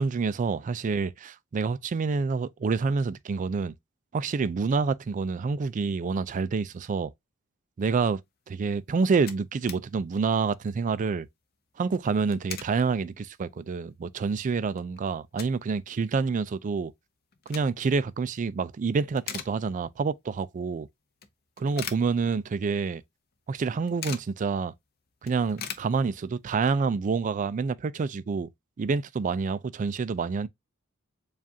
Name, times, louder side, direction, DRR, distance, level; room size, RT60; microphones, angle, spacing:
voice 1, 0.0-3.7 4.1-7.1 7.8-8.2 8.5-11.3 11.8-16.9 17.5-20.9 21.6-23.0 23.5-24.7 25.2-28.5 28.8-30.5, right 4 dB, 35° right, 0.3 m, -27 dB
sound 1, 8.7-8.8 8.9-9.9 10.2-10.3 10.6-10.9 12.1-12.8 13.3-13.4 13.9-14.0 14.3-15.7 16.0-16.1 17.1-18.0 18.4-18.7 19.0-20.1 20.4-20.5 21.2-22.7 23.0-23.1 23.3-24.4 24.8-24.9 25.1-26.5, left 8 dB, 45° left, 0.6 m, -41 dB
7.3 x 2.4 x 2.6 m
head